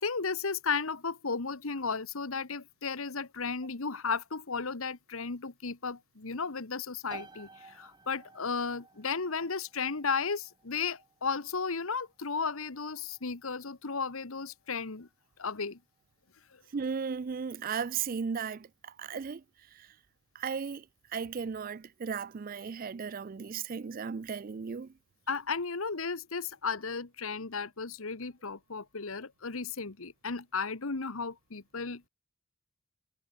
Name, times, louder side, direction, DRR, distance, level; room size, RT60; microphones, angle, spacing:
voice 1, 0.0-15.1 15.4-15.8 16.5-16.6 25.3-32.1, left 5 dB, 70° left, 1.3 m, -34 dB
sound 1, 7.1-21.6, right 3 dB, 20° right, 2.0 m, -56 dB
voice 2, 16.7-19.4 19.7-19.9 20.3-20.8 21.1-24.9, right 6 dB, 40° right, 0.4 m, -36 dB
head